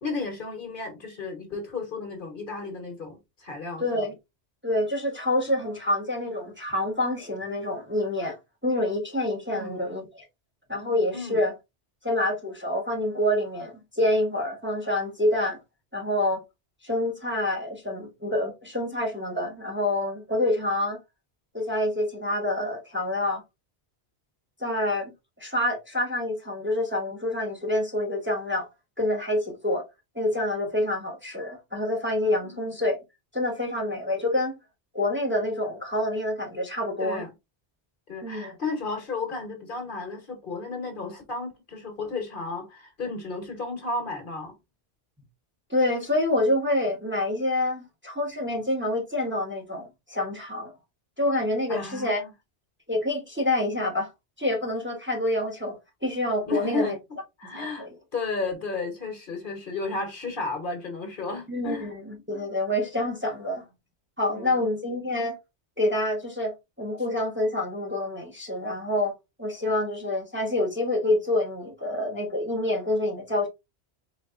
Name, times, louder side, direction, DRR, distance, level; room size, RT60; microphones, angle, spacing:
voice 1, 0.0-3.8 9.5-9.8 11.1-11.4 32.4-32.6 37.0-37.3 38.1-44.6 51.7-52.3 56.5-57.0 57.4-57.9 58.1-61.9 64.3-64.6, left 3 dB, 55° left, 1.2 m, -33 dB
voice 2, 3.8-4.1 4.6-8.4 8.6-10.3 10.7-11.5 12.0-15.6 15.9-16.4 16.8-21.0 21.5-23.4 24.6-25.1 25.4-28.7 29.0-29.8 30.1-33.0 33.3-34.6 34.9-37.2 38.2-38.6 45.7-50.7 51.2-52.2 52.9-54.1 54.4-55.8 56.0-57.0 57.5-57.9 61.5-63.6 64.2-65.4 65.8-73.5, left 1 dB, 10° right, 1.0 m, -27 dB
4.3 x 3.5 x 2.4 m
omnidirectional pair, 1.1 m